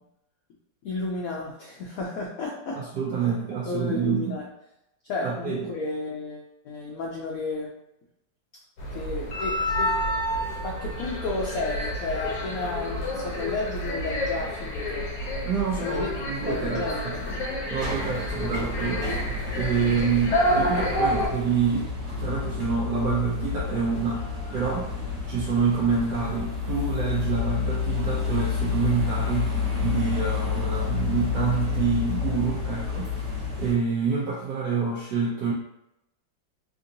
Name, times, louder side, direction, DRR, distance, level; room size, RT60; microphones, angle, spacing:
voice 1, 0.8-2.8 3.7-4.5 5.1-7.7 8.9-9.9 10.6-15.1 15.8-16.1 16.5-17.2 19.9-20.0, left 3 dB, 85° left, -2 dB, 0.7 m, -32 dB
voice 2, 2.8-4.4 5.2-5.7 15.4-17.1 17.7-24.2 24.5-35.5, right 6 dB, 70° right, -5 dB, 1.1 m, -27 dB
sound 1, 8.8-21.3, equal, 65° left, 1.1 m, -29 dB
sound 2, 17.8-33.7, left 5 dB, 50° right, 1.6 m, -29 dB
3.5 x 2.6 x 2.6 m, 0.85 s
omnidirectional pair, 2.1 m